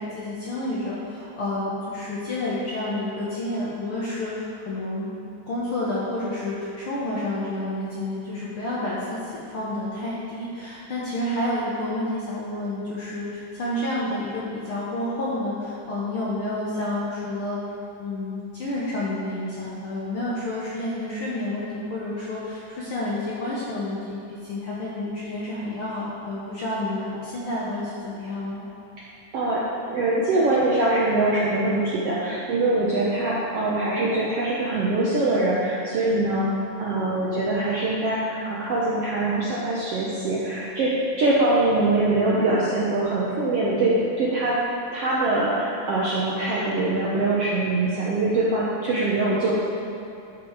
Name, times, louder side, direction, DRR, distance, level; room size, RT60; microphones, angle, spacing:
voice 1, 0.0-5.1 5.5-17.6 18.0-28.6, left 1 dB, 60° left, -7 dB, 1.5 m, -29 dB
voice 2, 29.9-36.5 36.8-40.9 41.2-44.6 44.9-49.5, right 2 dB, 70° right, -6 dB, 1.5 m, -23 dB
12.5 x 5.2 x 4.9 m, 2.7 s
omnidirectional pair, 3.9 m